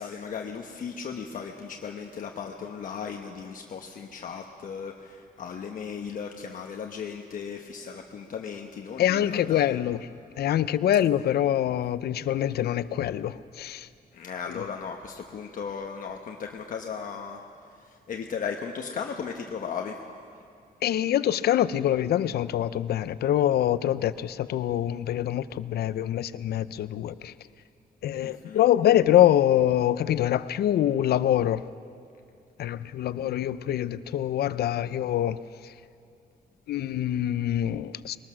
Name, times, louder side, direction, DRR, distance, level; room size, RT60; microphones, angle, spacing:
voice 1, 0.0-9.6 14.1-17.4 17.8-20.0 28.2-28.6, left 6 dB, 55° left, 1.0 m, -36 dB
voice 2, 9.0-10.1 10.4-13.9 14.5-14.6 20.8-27.3 28.0-31.7 32.6-35.7 36.7-38.2, left 11 dB, 85° left, 0.6 m, -25 dB
22.0 x 19.5 x 6.2 m
wide cardioid pair, 160°, 16 cm